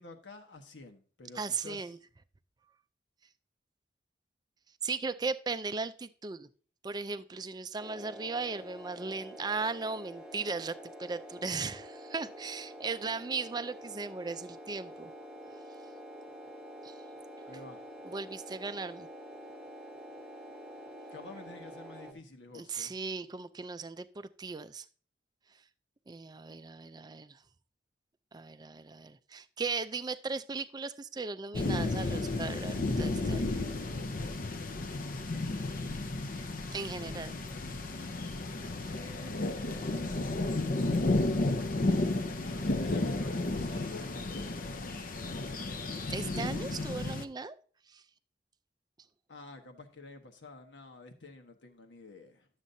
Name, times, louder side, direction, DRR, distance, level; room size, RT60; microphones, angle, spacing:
voice 1, 0.0-1.9 17.5-17.9 21.1-22.9 37.0-37.5 38.8-40.8 42.4-44.1 46.6-46.8 49.3-52.5, left 2 dB, 85° left, 1.3 m, -50 dB
voice 2, 1.4-2.0 4.8-6.5 6.8-15.1 16.8-17.0 18.0-19.1 22.5-24.9 26.1-27.4 28.3-33.4 36.7-37.3 46.1-47.6 47.9-48.0, right 4 dB, 25° right, 0.4 m, -37 dB
sound 1, 7.8-22.1, equal, 5° right, 1.0 m, -47 dB
sound 2, 31.5-47.3, left 2 dB, 50° left, 0.6 m, -33 dB
11.5 x 7.3 x 2.7 m
head